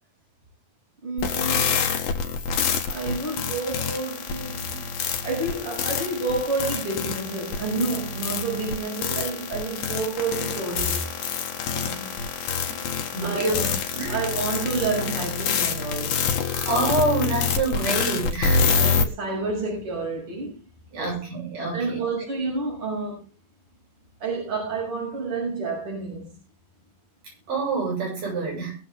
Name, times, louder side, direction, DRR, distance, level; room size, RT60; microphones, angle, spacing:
voice 1, 1.0-1.8 2.9-4.7 5.2-11.1 11.7-12.1 12.6-12.9 13.2-13.7 14.1-16.3 18.8-20.6 20.9-21.2 21.7-23.2 24.2-26.4, right 3 dB, 35° right, 7.4 m, -29 dB
sound 1, 1.2-19.0, left 6 dB, 85° left, 3.5 m, -26 dB
voice 2, 13.1-13.6 13.9-14.2 16.7-18.7 20.9-22.0 27.5-28.8, right 3 dB, 60° right, 8.8 m, -26 dB
22.0 x 8.0 x 3.6 m
omnidirectional pair, 4.1 m